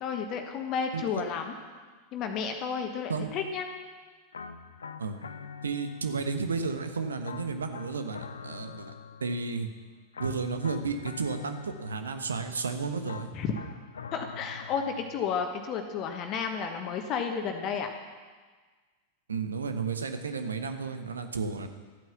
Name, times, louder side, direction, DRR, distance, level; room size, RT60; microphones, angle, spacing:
voice 1, 0.0-1.5 2.1-3.7 13.3-13.7 14.1-17.9, left 6 dB, 35° left, 4 dB, 1.3 m, -32 dB
voice 2, 0.9-1.2 3.1-3.3 5.0-5.2 5.6-8.9 9.2-9.7 10.2-13.3 19.3-21.7, right 4 dB, 70° right, 7 dB, 1.2 m, -32 dB
sound 1, 4.3-6.4 7.2-9.6 10.1-12.2 13.0-15.4, left 5 dB, 70° left, 0.7 m, -44 dB
13.5 x 9.2 x 7.1 m, 1.4 s
figure-of-eight pair, 90°, 0 cm